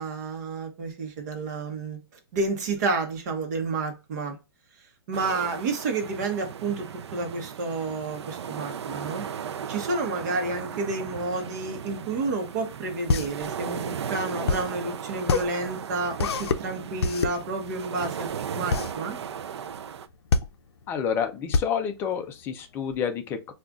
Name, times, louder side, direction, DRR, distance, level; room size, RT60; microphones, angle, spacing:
voice 1, 0.0-2.0 2.3-4.4 5.1-6.9 7.1-9.2 9.7-19.2, right 3 dB, 45° right, 1.0 m, -30 dB
sound 1, 5.1-20.1, right 8 dB, 80° right, 0.4 m, -36 dB
sound 2, 12.6-23.0, left 4 dB, 70° left, 0.5 m, -28 dB
voice 2, 20.9-23.5, left 7 dB, 15° left, 0.4 m, -29 dB
4.9 x 2.4 x 2.3 m
hypercardioid pair, 150°, 14 cm